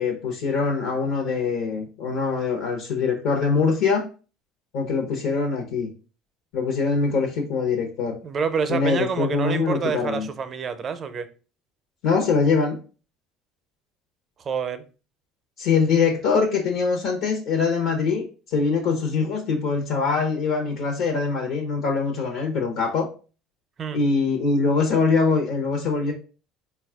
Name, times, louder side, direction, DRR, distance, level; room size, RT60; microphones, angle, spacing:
voice 1, 0.0-4.1 4.7-5.9 6.5-8.2 8.7-10.3 12.0-12.8 15.6-23.1 23.9-26.1, left 4 dB, 75° left, 0.8 m, -23 dB
voice 2, 8.2-11.3 14.4-14.8 23.8-24.0, right 6 dB, 40° right, 0.5 m, -27 dB
4.1 x 2.3 x 3.4 m
supercardioid pair, 90°, 0 cm